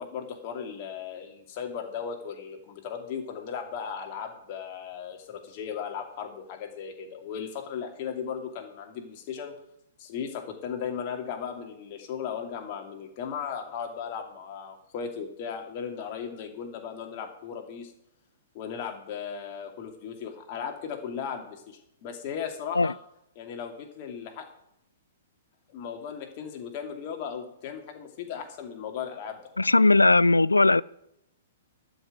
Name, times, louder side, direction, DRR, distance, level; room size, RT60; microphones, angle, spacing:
voice 1, 0.0-9.6 10.0-17.9 18.5-22.9 23.4-24.5 25.7-29.4, left 7 dB, 40° left, 2.5 m, -36 dB
voice 2, 29.6-30.8, left 2 dB, 80° left, 0.3 m, -19 dB
12.5 x 5.9 x 9.1 m
figure-of-eight pair, 110°, 0 cm